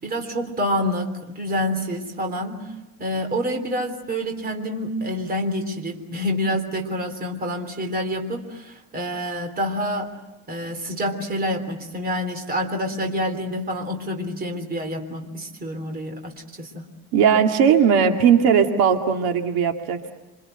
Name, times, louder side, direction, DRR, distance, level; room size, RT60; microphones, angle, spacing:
voice 1, 0.0-2.7 3.0-10.1 10.5-16.9, equal, 20° right, 5 dB, 3.5 m, -27 dB
voice 2, 17.1-20.1, right 7 dB, 60° right, 4 dB, 2.3 m, -18 dB
28.5 x 25.5 x 7.9 m, 1.0 s
cardioid pair, 165°, 40 cm